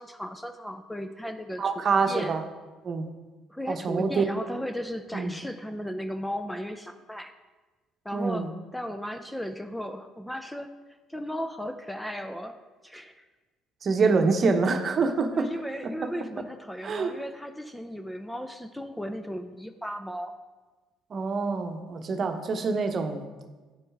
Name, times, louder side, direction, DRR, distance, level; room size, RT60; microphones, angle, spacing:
voice 1, 0.0-2.4 3.5-7.3 8.0-10.7 11.1-12.6 12.8-13.3 15.3-20.3, equal, 5° left, 8 dB, 0.6 m, -36 dB
voice 2, 1.6-2.4 2.8-3.0 3.7-4.2 5.1-5.3 8.1-8.5 13.8-15.5 16.0-16.1 16.8-17.1 21.1-23.2, right 4 dB, 45° right, 6 dB, 0.9 m, -26 dB
9.0 x 6.9 x 3.6 m, 1.3 s
hypercardioid pair, 65°, 0 cm